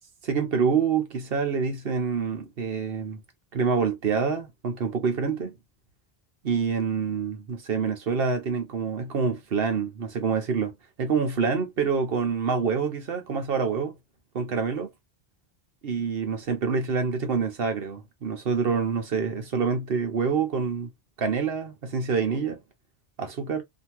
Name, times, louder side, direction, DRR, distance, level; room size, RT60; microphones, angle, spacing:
voice 1, 0.2-3.2 3.5-5.5 6.4-14.0 14.3-14.9 15.8-20.9 21.2-22.6 23.2-23.6, right 5 dB, 70° right, 1.1 m, -26 dB
2.9 x 2.6 x 2.9 m
omnidirectional pair, 1.0 m